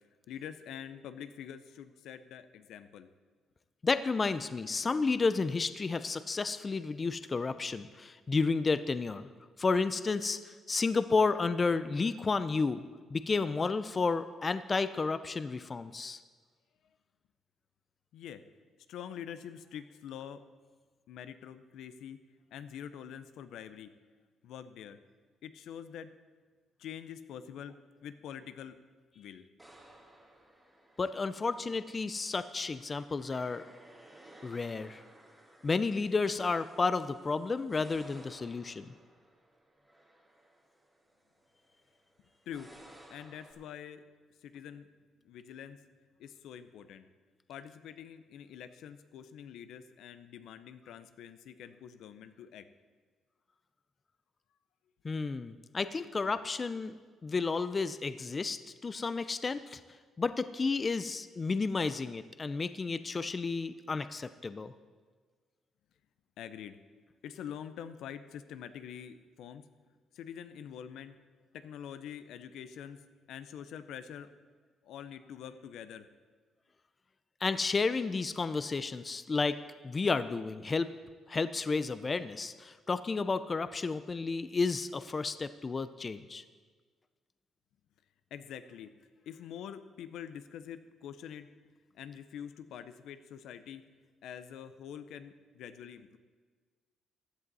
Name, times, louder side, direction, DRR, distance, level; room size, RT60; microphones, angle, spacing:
voice 1, 0.3-3.1 18.1-18.4 18.9-20.4 21.1-22.2 22.5-23.9 24.4-25.0 25.4-26.1 26.8-28.8 29.1-29.5 42.5-42.7 43.1-44.0 44.4-44.9 45.2-45.8 46.2-47.1 47.5-52.7 66.4-66.8 67.2-69.6 70.1-71.2 71.5-73.0 73.3-74.3 74.8-76.1 88.3-88.9 89.3-91.5 92.0-93.8 94.2-96.2, left 9 dB, 80° left, 11 dB, 0.6 m, -45 dB
voice 2, 3.8-9.3 9.6-12.8 13.1-16.2 31.0-33.6 34.4-35.0 35.6-38.9 55.0-59.8 60.2-64.7 77.4-79.6 79.8-80.9 81.3-86.4, left 4 dB, 25° left, 13 dB, 0.4 m, -32 dB
sound 1, 29.6-43.5, right 1 dB, 5° right, 2.1 m, -58 dB
15.5 x 11.0 x 4.1 m, 1.5 s
cardioid pair, 135°, 0 cm